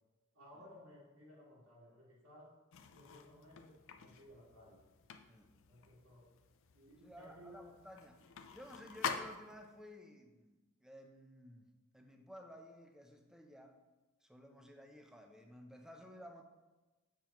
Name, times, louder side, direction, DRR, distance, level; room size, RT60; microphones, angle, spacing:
voice 1, 0.3-2.5 2.9-4.8 5.7-6.3 6.7-7.8, equal, 80° right, -7 dB, 2.0 m, -58 dB
sound 1, 2.7-9.8, left 6 dB, 60° left, 0.5 m, -47 dB
voice 2, 7.0-8.2 8.5-13.8 14.2-16.4, equal, 5° right, 4 dB, 0.6 m, -55 dB
7.2 x 6.8 x 3.0 m, 1.2 s
head